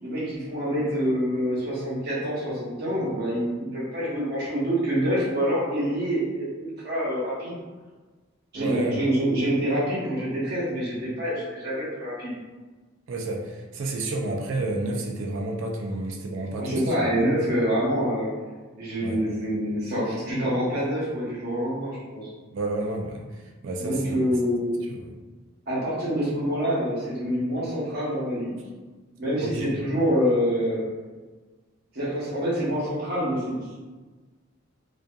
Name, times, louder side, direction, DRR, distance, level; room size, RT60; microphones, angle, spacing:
voice 1, 0.0-7.6 8.5-12.3 16.6-18.3 18.8-22.3 23.8-24.7 25.7-28.6 29.2-30.8 31.9-33.8, equal, 45° right, -7 dB, 0.8 m, -26 dB
voice 2, 8.5-9.0 13.1-17.2 19.0-19.2 22.5-23.3 23.6-24.2 24.9-25.1 29.4-29.7, right 2 dB, 65° right, 1 dB, 0.3 m, -30 dB
2.6 x 2.3 x 2.2 m, 1.3 s
head